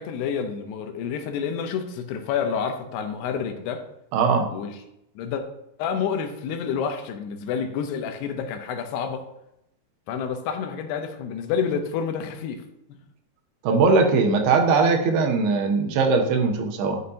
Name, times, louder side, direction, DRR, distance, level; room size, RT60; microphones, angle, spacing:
voice 1, 0.0-3.8 4.5-4.7 5.2-5.4 5.8-9.2 10.1-12.6 12.9-13.0, left 7 dB, 80° left, 6 dB, 2.8 m, -29 dB
voice 2, 4.1-4.5 13.6-17.0, right 4 dB, 75° right, 4 dB, 2.7 m, -20 dB
11.0 x 6.5 x 2.8 m, 0.81 s
omnidirectional pair, 4.8 m